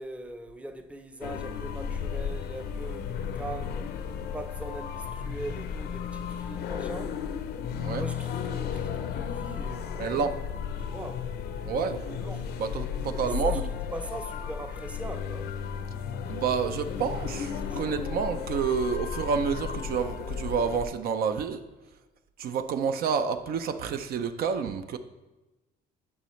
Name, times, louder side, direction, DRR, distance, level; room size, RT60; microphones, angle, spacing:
voice 1, 0.0-7.2 8.0-10.1 10.8-12.5 13.2-13.6 13.9-15.5 17.7-17.9, right 1 dB, 5° right, 0.6 m, -41 dB
sound 1, 1.2-20.9, left 7 dB, 65° left, 0.6 m, -34 dB
voice 2, 7.7-8.0 10.0-10.4 11.6-12.0 12.6-13.6 16.3-21.6 22.4-25.0, right 6 dB, 60° right, 0.5 m, -29 dB
11.0 x 5.6 x 3.1 m
cardioid pair, 115°, 18 cm